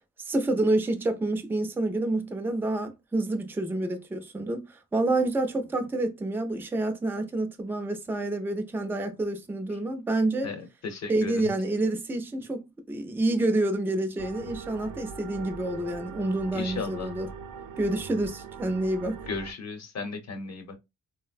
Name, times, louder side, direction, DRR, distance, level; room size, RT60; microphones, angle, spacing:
voice 1, 0.2-10.5 11.1-17.3 17.8-19.2, right 2 dB, 5° right, 0.4 m, -28 dB
voice 2, 10.4-11.5 16.5-17.2 19.3-20.8, left 4 dB, 55° left, 0.9 m, -35 dB
sound 1, 14.2-19.5, right 6 dB, 85° right, 0.5 m, -41 dB
3.9 x 2.0 x 2.4 m
wide cardioid pair, 150°, 33 cm